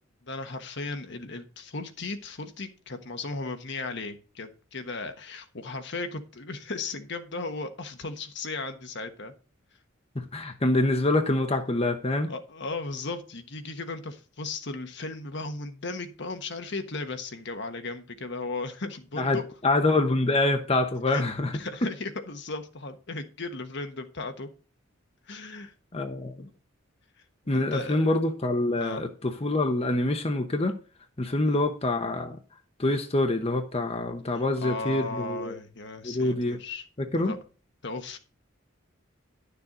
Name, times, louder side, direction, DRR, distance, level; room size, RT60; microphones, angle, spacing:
voice 1, 0.2-9.3 12.3-19.4 21.1-21.2 21.5-24.5 25.3-25.7 26.4-26.5 27.5-28.1 28.7-29.0 31.5-31.6 34.3-36.8 37.2-37.4 37.8-38.2, left 3 dB, 60° left, 1.3 m, -36 dB
voice 2, 10.1-12.3 19.2-21.6 25.9-26.5 27.5-30.8 31.2-32.4 32.8-35.6 36.0-36.6 37.0-37.3, left 2 dB, 30° left, 1.0 m, -26 dB
11.5 x 6.9 x 3.9 m
head